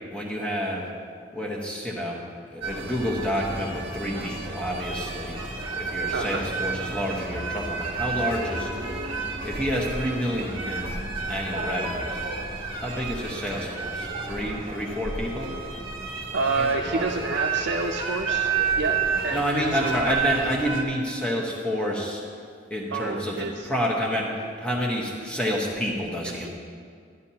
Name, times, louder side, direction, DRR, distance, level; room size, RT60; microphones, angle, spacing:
voice 1, 0.1-0.9 1.3-2.2 2.5-5.4 5.8-8.8 9.4-11.0 11.3-12.2 12.8-15.5 16.6-17.3 19.3-22.2 22.7-26.5, equal, 5° left, -2 dB, 1.1 m, -29 dB
sound 1, 2.6-20.8, right 4 dB, 30° right, 1.5 m, -31 dB
voice 2, 6.1-6.4 16.3-20.2 22.9-23.7 26.4-26.5, right 3 dB, 70° right, 0 dB, 0.5 m, -29 dB
12.0 x 11.5 x 2.9 m, 2.1 s
head